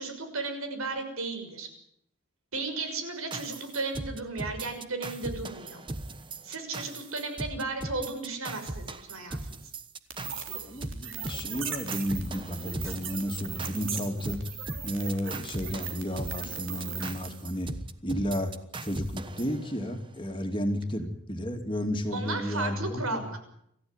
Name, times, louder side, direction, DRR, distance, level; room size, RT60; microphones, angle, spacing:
voice 1, 0.0-1.7 2.5-5.8 6.4-9.6 22.1-23.4, right 3 dB, 80° right, 7 dB, 6.3 m, -34 dB
sound 1, 3.3-20.2, right 2 dB, 25° right, 1.2 m, -39 dB
sound 2, 10.1-17.3, right 7 dB, 60° right, 3.8 m, -39 dB
voice 2, 10.6-14.4 14.8-17.7 18.0-18.5 18.8-23.2, equal, 25° left, 4 dB, 2.7 m, -32 dB
26.5 x 15.0 x 9.8 m, 0.74 s
head